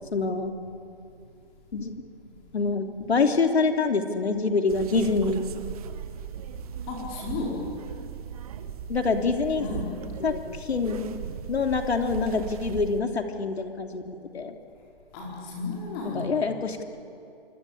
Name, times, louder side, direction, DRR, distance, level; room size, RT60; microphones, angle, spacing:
voice 1, 0.1-0.5 1.7-2.0 2.5-5.6 8.9-9.6 10.2-11.2 11.5-14.6 16.0-17.0, left 4 dB, 90° left, 5 dB, 3.3 m, -26 dB
voice 2, 2.2-2.7 5.8-5.9 6.7-7.8 9.6-10.1 11.2-11.4 15.1-16.6, left 3 dB, 25° left, -2 dB, 4.6 m, -35 dB
sound 1, 4.7-13.0, right 8 dB, 35° right, 1.5 m, -38 dB
26.5 x 24.5 x 8.6 m, 2.6 s
hypercardioid pair, 160°, 31 cm